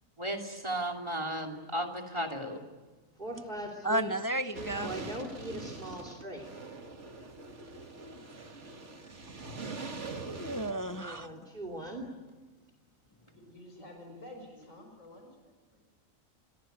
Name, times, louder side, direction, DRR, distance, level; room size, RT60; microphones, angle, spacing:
voice 1, 0.2-2.6, right 1 dB, 20° right, 2.8 m, -34 dB
voice 2, 3.2-4.1 4.5-6.5 11.0-12.1, right 1 dB, 40° right, 3.0 m, -40 dB
voice 3, 3.8-4.9 8.0-8.2 9.6-9.8 10.3-11.3, right 1 dB, 20° left, 0.7 m, -33 dB
sound 1, 4.5-11.1, right 3 dB, 60° right, 2.4 m, -43 dB
voice 4, 13.2-15.8, left 1 dB, 75° left, 6.1 m, -51 dB
26.5 x 22.0 x 9.2 m
omnidirectional pair, 1.4 m